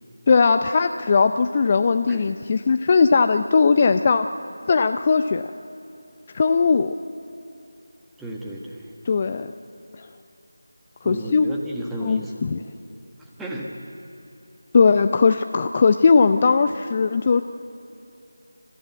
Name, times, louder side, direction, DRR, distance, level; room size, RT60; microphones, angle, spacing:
voice 1, 0.3-4.3 4.7-5.4 6.3-6.9 9.1-9.5 10.0-10.1 11.0-11.5 12.0-12.6 14.7-17.4, left 5 dB, 25° left, 8 dB, 0.5 m, -19 dB
voice 2, 8.2-9.0 11.0-12.5 13.2-13.7, right 1 dB, 5° right, -2 dB, 1.4 m, -34 dB
29.5 x 14.5 x 9.5 m, 2.7 s
figure-of-eight pair, 165°, 0 cm